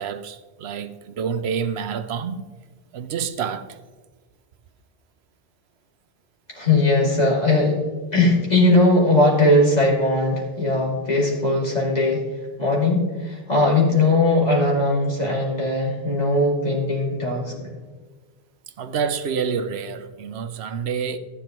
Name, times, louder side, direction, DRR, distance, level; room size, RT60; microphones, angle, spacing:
voice 1, 0.0-2.4 2.9-3.7 18.8-21.2, right 6 dB, 85° right, 0.9 m, -28 dB
voice 2, 6.5-7.8 8.1-12.2 12.6-17.7, left 2 dB, 40° left, 2.6 m, -19 dB
13.5 x 10.0 x 3.0 m
omnidirectional pair, 1.1 m